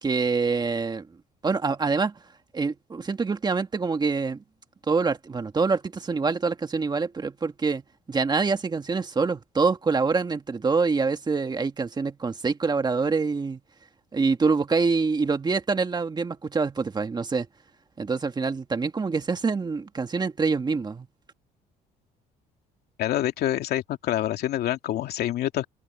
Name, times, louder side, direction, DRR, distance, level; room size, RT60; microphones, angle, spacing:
voice 1, 0.0-1.1 1.4-2.1 2.5-4.4 4.9-7.8 8.1-13.6 14.1-17.5 18.0-21.1, right 4 dB, 25° right, 1.7 m, -25 dB
voice 2, 23.0-25.7, left 13 dB, 70° left, 2.5 m, -26 dB
cardioid pair, 110°, 17 cm